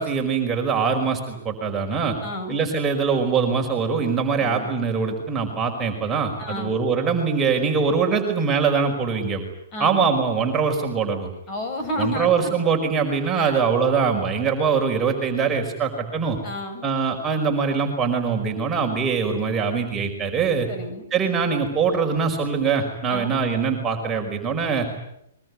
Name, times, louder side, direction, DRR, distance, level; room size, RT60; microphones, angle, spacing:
voice 1, 0.0-2.2 2.5-9.5 9.8-11.3 12.0-16.4 16.8-20.7 21.1-24.9, right 5 dB, 15° right, 2 dB, 5.1 m, -23 dB
voice 2, 2.2-2.6 4.4-4.7 6.4-6.8 9.7-10.1 11.5-12.5 13.3-13.6 16.4-16.9 20.7-21.0 23.1-23.3, left 1 dB, 30° left, 6 dB, 7.2 m, -31 dB
23.5 x 22.5 x 9.7 m, 0.78 s
hypercardioid pair, 135°, 0 cm